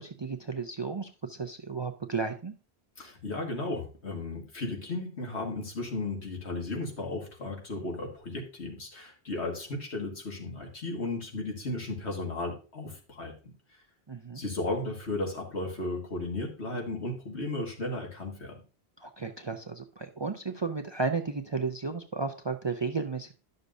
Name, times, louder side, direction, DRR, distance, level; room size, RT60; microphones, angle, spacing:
voice 1, 0.0-2.5 14.1-14.4 19.0-23.3, right 4 dB, 35° right, 7 dB, 0.4 m, -33 dB
voice 2, 3.0-13.5 14.3-18.6, left 2 dB, 85° left, 0 dB, 2.2 m, -35 dB
11.0 x 6.6 x 2.6 m, 0.34 s
omnidirectional pair, 1.1 m